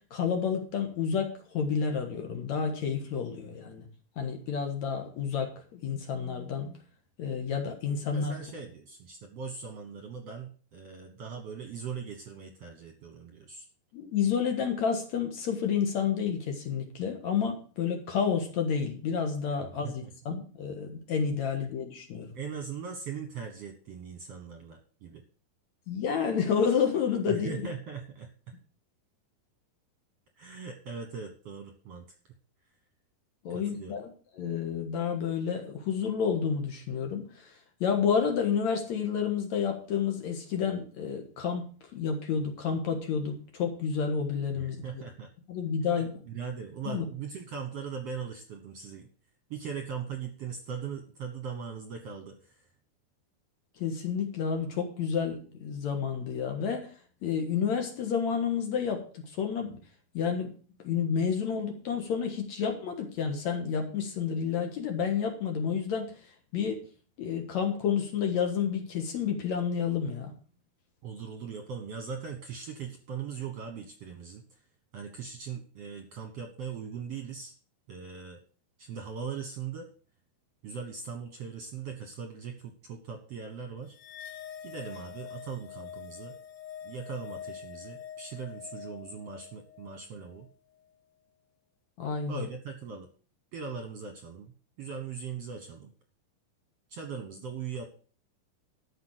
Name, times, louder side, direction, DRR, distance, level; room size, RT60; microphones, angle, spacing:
voice 1, 0.1-3.9 4.2-6.8 7.2-8.4 13.9-22.3 25.9-27.6 33.4-37.5 37.8-41.7 41.9-45.0 45.5-46.2 46.9-47.1 53.8-56.9 57.2-59.8 60.1-60.5 60.8-66.8 67.2-70.3 92.0-92.5, left 6 dB, 60° left, 4 dB, 2.4 m, -30 dB
voice 2, 8.1-13.6 19.8-20.1 22.3-25.2 27.3-28.5 30.4-32.0 33.5-33.9 44.6-45.3 45.9-49.1 49.5-52.7 71.0-74.6 74.9-77.5 77.9-78.4 78.8-79.9 80.6-83.9 84.6-86.3 86.8-90.5 92.3-93.1 93.5-95.9 96.9-97.9, right 6 dB, 60° right, 6 dB, 1.8 m, -40 dB
sound 1, 84.0-90.5, left 8 dB, 80° left, 3.1 m, -45 dB
13.0 x 6.1 x 6.3 m, 0.41 s
omnidirectional pair, 4.2 m